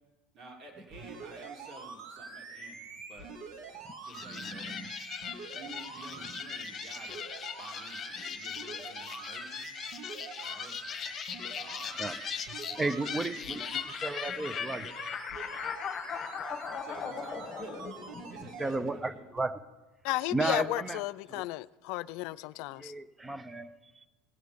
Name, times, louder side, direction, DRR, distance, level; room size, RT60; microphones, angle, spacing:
voice 1, 0.3-2.8 3.1-3.3 4.0-4.7 5.3-7.3 7.6-9.7 10.4-10.8 11.5-12.0 12.6-13.7 16.8-17.8 18.3-19.3, right 3 dB, 45° right, 2.9 m, -51 dB
sound 1, 0.9-18.8 19.4-19.5, right 4 dB, 65° right, 1.9 m, -45 dB
sound 2, 4.1-18.7, left 7 dB, 35° left, 1.2 m, -39 dB
voice 2, 4.2-4.9 6.2-6.3 8.2-8.4 12.0-12.2 12.8-14.9 18.6-19.6 20.3-21.0 21.3-21.4 22.7-24.1, right 2 dB, 15° right, 0.9 m, -34 dB
voice 3, 20.0-22.9, left 19 dB, 70° left, 0.4 m, -34 dB
19.0 x 8.1 x 5.2 m
supercardioid pair, 95°, 0 cm